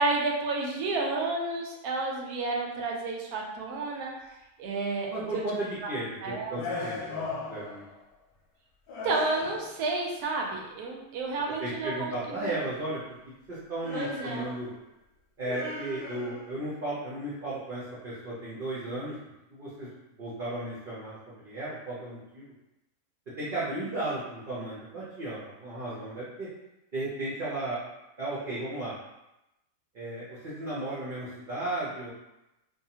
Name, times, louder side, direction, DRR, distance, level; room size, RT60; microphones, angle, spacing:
voice 1, 0.0-4.1 4.6-5.4 5.8-5.9 6.2-6.6 9.0-12.6 13.9-14.5, right 3 dB, 80° right, 0 dB, 1.1 m, -31 dB
voice 2, 5.1-7.8 11.6-13.0 13.5-14.7 15.4-19.1 19.5-19.9 20.2-21.2 21.4-22.5 23.4-26.5 26.9-27.8 28.2-28.9 29.9-32.1, right 2 dB, 50° right, -9 dB, 0.6 m, -35 dB
sound 1, 6.5-8.0 8.9-9.9 13.8-14.8 15.4-16.7, left 3 dB, 75° left, 1.0 m, -38 dB
2.7 x 2.3 x 2.8 m, 0.92 s
omnidirectional pair, 1.6 m